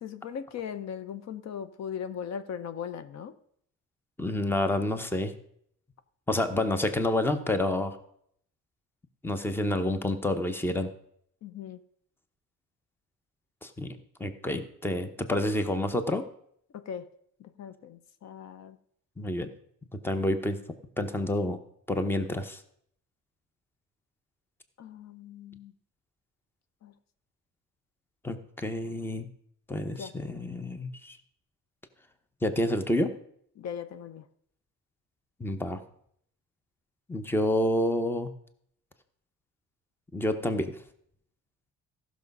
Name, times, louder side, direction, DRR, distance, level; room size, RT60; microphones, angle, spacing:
voice 1, 0.0-3.4 11.4-11.8 16.7-17.1 17.4-18.8 24.8-25.7 26.8-26.9 30.0-30.1 33.6-34.3, left 8 dB, 60° left, 13 dB, 0.7 m, -39 dB
voice 2, 4.2-5.3 6.3-8.0 9.2-10.9 13.6-16.2 19.2-19.5 20.0-20.6 21.0-21.6 21.9-22.6 28.2-29.3 29.7-31.2 32.4-33.1 35.4-35.8 37.1-38.3 40.1-40.8, left 1 dB, 5° left, 10 dB, 0.8 m, -28 dB
15.0 x 6.2 x 5.3 m, 0.68 s
cardioid pair, 140°, 30 cm